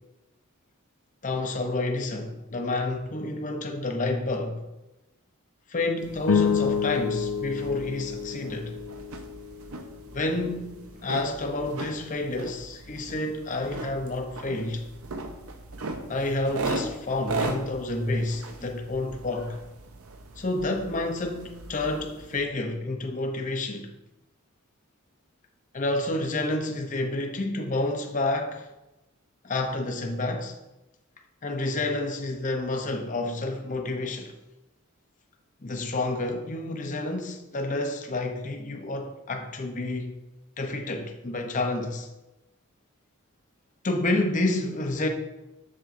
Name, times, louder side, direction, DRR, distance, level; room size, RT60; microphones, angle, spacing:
voice 1, 1.2-4.7 5.7-8.7 10.1-14.8 16.1-19.6 20.4-23.9 25.7-28.7 29.4-30.6 31.4-34.3 35.6-40.1 40.6-42.1 43.8-45.1, left 2 dB, 35° left, 0.7 m, -29 dB
sound 1, 6.0-22.5, right 2 dB, 70° right, 0.7 m, -38 dB
sound 2, 6.2-10.7, left 6 dB, 70° left, 0.4 m, -29 dB
7.5 x 7.0 x 2.6 m
head